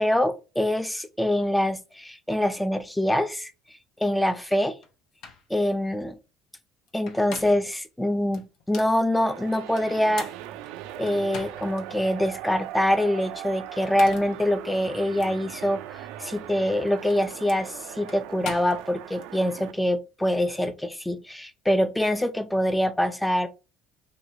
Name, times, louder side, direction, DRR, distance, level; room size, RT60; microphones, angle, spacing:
voice 1, 0.0-3.5 4.0-4.8 5.5-6.2 6.9-10.3 11.0-23.5, left 1 dB, 5° left, 0.4 m, -25 dB
sound 1, 4.8-4.9 5.2-5.5 6.9-7.8 8.3-9.0 9.8-11.8 12.3-12.4 13.7-14.4 15.2-15.3 16.6-19.3, left 5 dB, 70° left, 0.7 m, -41 dB
sound 2, 9.1-19.7, right 12 dB, 85° right, 0.3 m, -40 dB
2.9 x 2.3 x 3.8 m
cardioid pair, 115°, 0 cm